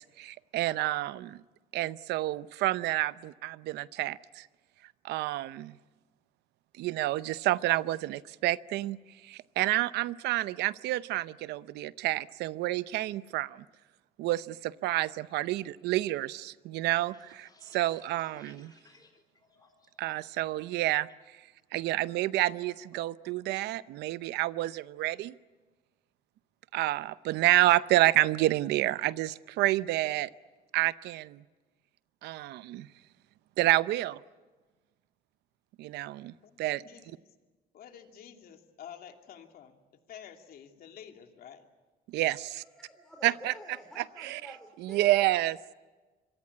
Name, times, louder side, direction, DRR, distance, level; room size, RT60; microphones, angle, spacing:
voice 1, 0.0-1.4 1.7-4.5 5.0-5.8 6.8-13.6 14.2-18.7 20.0-21.4 21.7-25.3 26.7-30.3 30.7-31.4 32.2-32.9 33.6-34.2 35.8-36.8 42.1-42.6 43.2-43.5 44.0-44.4 44.8-45.7, right 16 dB, 85° right, 16 dB, 0.7 m, -29 dB
sound 1, 16.6-20.3 20.6-21.1 21.5-22.0 22.2-23.5 23.8-24.1 24.4-24.9, left 3 dB, 25° left, 3.8 m, -61 dB
voice 2, 36.4-37.1 37.7-39.8 40.1-41.7, left 9 dB, 60° left, 4 dB, 2.8 m, -49 dB
voice 3, 42.5-45.1, equal, 5° left, 0 dB, 4.4 m, -49 dB
26.0 x 23.0 x 8.6 m, 1.3 s
cardioid pair, 110°, 17 cm